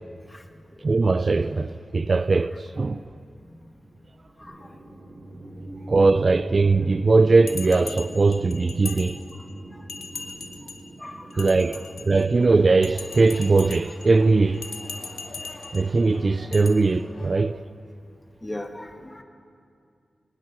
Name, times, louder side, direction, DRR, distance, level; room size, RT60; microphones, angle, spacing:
voice 1, 0.8-3.0 5.9-9.2 11.4-14.6 15.7-17.6, right 3 dB, 40° right, 0.4 m, -20 dB
sound 1, 4.4-16.5, right 1 dB, 65° right, 7.5 m, -43 dB
Bell, 7.5-9.5 9.9-10.9 11.3-12.3 12.8-14.1 14.5-15.9 16.5-16.7, left 4 dB, 75° left, 1.8 m, -39 dB
voice 2, 11.0-11.8 18.4-19.2, left 1 dB, 15° left, 1.5 m, -38 dB
sound 2, 12.3-17.4, left 2 dB, 40° left, 2.2 m, -46 dB
22.0 x 20.0 x 6.2 m
wide cardioid pair, 130°, 0 cm